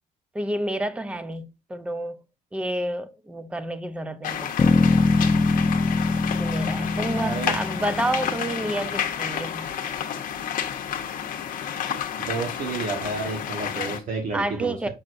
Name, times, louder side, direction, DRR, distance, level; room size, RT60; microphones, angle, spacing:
voice 1, 0.3-2.2 2.5-4.7 6.4-9.7 14.3-14.9, right 1 dB, 5° right, 0.6 m, -29 dB
sound 1, 4.2-14.0, left 9 dB, 55° left, 1.0 m, -30 dB
Bass guitar, 4.6-8.9, left 3 dB, 25° left, 0.8 m, -23 dB
voice 2, 7.1-7.6 12.2-14.9, right 4 dB, 50° right, 1.4 m, -30 dB
6.3 x 6.2 x 2.6 m
cardioid pair, 110°, 17 cm